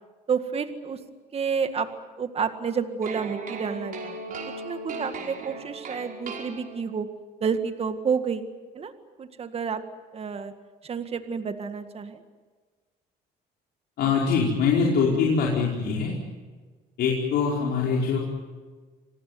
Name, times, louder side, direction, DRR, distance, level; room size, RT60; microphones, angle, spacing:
voice 1, 0.3-1.0 1.3-1.9 2.2-4.4 4.6-7.1 7.4-8.5 8.7-8.9 9.2-9.8 10.1-10.5 10.8-12.2, right 6 dB, 35° right, 8 dB, 2.0 m, -29 dB
sound 1, 3.0-7.1, right 3 dB, 55° right, 5.3 m, -37 dB
voice 2, 14.0-16.1 17.0-18.2, left 5 dB, 70° left, -3 dB, 5.0 m, -23 dB
27.0 x 18.5 x 9.6 m, 1.4 s
cardioid pair, 110°, 17 cm